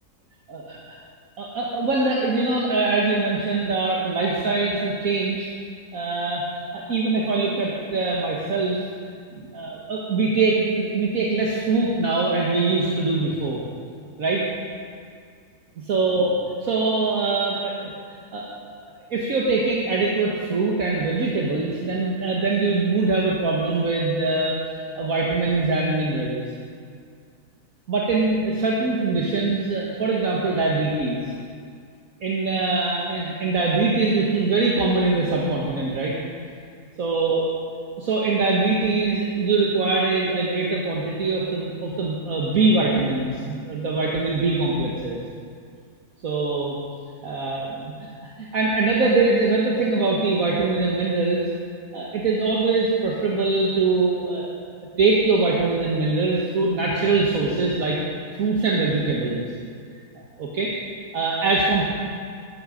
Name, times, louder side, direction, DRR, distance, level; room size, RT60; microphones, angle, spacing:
voice 1, 1.4-5.5 5.9-6.4 6.7-8.8 9.3-13.6 14.2-14.4 15.8-16.3 16.6-17.7 18.3-18.5 19.1-24.5 25.0-26.4 27.9-31.2 32.2-36.1 37.0-37.4 38.0-45.2 46.2-46.8 47.2-48.1 48.4-51.4 51.9-54.5 55.0-58.0 58.4-59.5 60.4-60.7 61.1-61.8, right 3 dB, 60° right, -3 dB, 1.9 m, -23 dB
13.5 x 13.5 x 5.1 m, 2.2 s
omnidirectional pair, 1.7 m